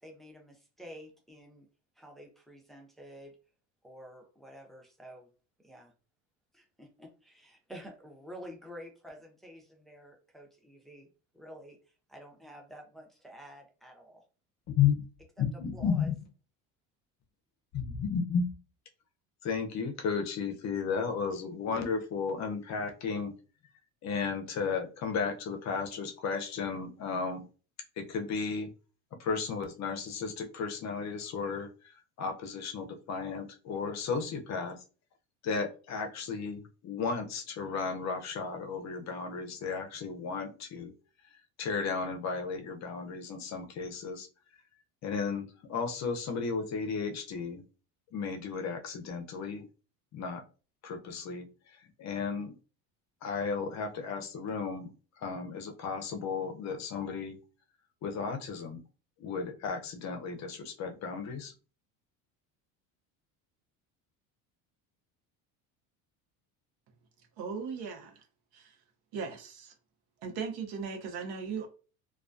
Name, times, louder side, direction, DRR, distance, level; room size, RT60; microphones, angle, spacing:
voice 1, 0.0-1.7 2.0-3.4 3.8-5.3 5.6-5.9 6.5-14.2 15.4-15.5 15.7-16.1, equal, ahead, 0.5 m, -50 dB
voice 2, 15.6-16.1 17.7-18.5 19.4-23.3 24.0-27.4 28.0-28.7 29.2-34.8 35.4-40.9 41.6-44.3 45.0-47.6 48.1-49.7 50.1-50.4 50.8-52.6 53.2-57.4 58.0-58.8 59.2-61.5, left 5 dB, 45° left, 0.6 m, -34 dB
voice 3, 67.4-68.2 68.5-68.8 69.1-69.7 70.2-71.7, right 5 dB, 70° right, 0.8 m, -38 dB
2.3 x 2.2 x 2.4 m
supercardioid pair, 100°, 40 cm